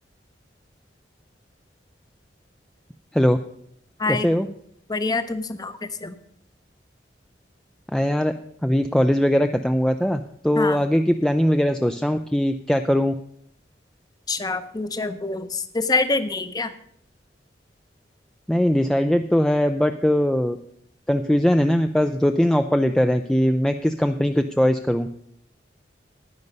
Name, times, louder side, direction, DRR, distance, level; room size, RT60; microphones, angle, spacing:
voice 1, 4.1-4.5 7.9-8.3 8.6-13.1 18.5-20.6 21.1-25.1, equal, 5° left, 7 dB, 0.3 m, -20 dB
voice 2, 4.9-6.2 10.5-10.8 14.3-16.7, left 3 dB, 25° left, 12 dB, 0.7 m, -26 dB
11.0 x 9.4 x 5.3 m, 0.66 s
head